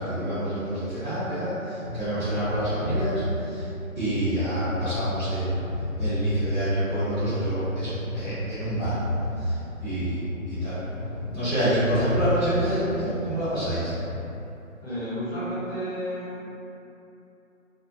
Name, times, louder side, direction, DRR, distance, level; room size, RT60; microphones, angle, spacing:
voice 1, 0.0-3.7 3.9-5.6 6.0-10.8 11.3-13.9, right 1 dB, 20° left, -24 dB, 0.7 m, -27 dB
sound 1, 1.8-14.3, left 1 dB, 65° left, 0.8 m, -34 dB
voice 2, 14.8-16.5, equal, 45° left, -13 dB, 1.2 m, -32 dB
2.3 x 2.1 x 2.7 m, 2.9 s
figure-of-eight pair, 150°, 41 cm